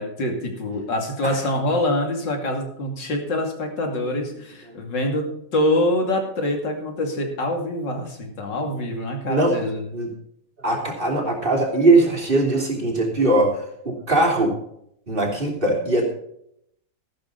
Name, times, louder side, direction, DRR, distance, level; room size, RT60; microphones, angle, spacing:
voice 1, 0.0-9.9, left 1 dB, 85° left, 3 dB, 3.2 m, -25 dB
voice 2, 10.6-14.6 15.1-16.0, right 2 dB, 30° right, 0 dB, 3.2 m, -21 dB
13.5 x 12.5 x 4.0 m, 0.73 s
omnidirectional pair, 1.9 m